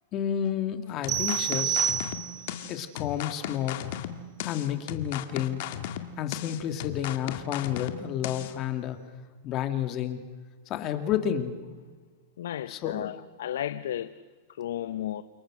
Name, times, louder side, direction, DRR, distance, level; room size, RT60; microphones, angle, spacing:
voice 1, 0.1-1.9 2.7-3.8 4.4-5.6 6.2-9.0 9.4-10.2 10.7-11.6 12.7-13.1, left 10 dB, 35° left, 2.5 m, -30 dB
sound 1, 1.0-8.5, left 11 dB, 60° left, 2.0 m, -36 dB
sound 2, 1.1-2.6, right 9 dB, 35° right, 2.5 m, -28 dB
voice 2, 12.4-14.1 14.6-15.2, left 11 dB, 85° left, 1.0 m, -33 dB
29.5 x 27.5 x 6.4 m
supercardioid pair, 150°, 0 cm